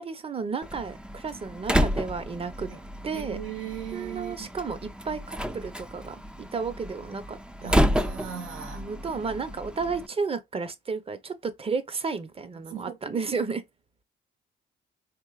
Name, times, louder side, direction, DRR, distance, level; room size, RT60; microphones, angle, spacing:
voice 1, 0.0-2.7 3.0-3.4 3.9-7.8 8.7-13.6, right 5 dB, 30° right, 0.7 m, -33 dB
Slam, 0.6-10.1, equal, 5° right, 0.4 m, -30 dB
voice 2, 3.1-4.5 7.6-8.9 12.7-13.4, right 9 dB, 85° right, 1.2 m, -38 dB
4.4 x 3.0 x 2.3 m
cardioid pair, 90°, 20 cm